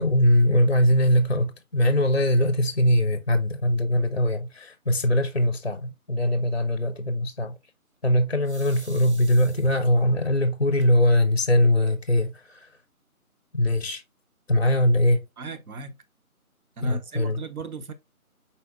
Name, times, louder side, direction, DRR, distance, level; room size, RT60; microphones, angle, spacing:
voice 1, 0.0-7.6 8.0-12.7 13.5-14.0 14.5-15.2 16.8-17.4, left 1 dB, 50° left, 0.5 m, -21 dB
sound 1, 8.4-10.0 10.8-10.9 11.3-11.4 11.7-12.3, right 3 dB, 50° right, 0.7 m, -48 dB
voice 2, 15.4-16.0 16.8-17.9, right 3 dB, 75° right, 1.0 m, -36 dB
4.6 x 4.2 x 2.3 m
figure-of-eight pair, 180°, 44 cm